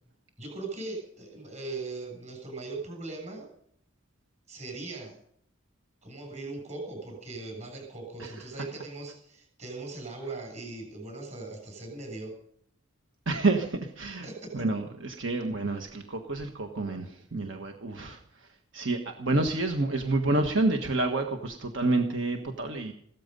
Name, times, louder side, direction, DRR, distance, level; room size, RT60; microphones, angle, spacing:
voice 1, 0.4-3.5 4.5-5.2 6.0-12.3 14.2-14.6, right 3 dB, 35° right, 2 dB, 7.1 m, -39 dB
voice 2, 8.2-8.6 13.2-14.3 14.5-22.9, right 2 dB, 70° right, 4 dB, 1.4 m, -29 dB
16.0 x 13.5 x 5.4 m, 0.68 s
head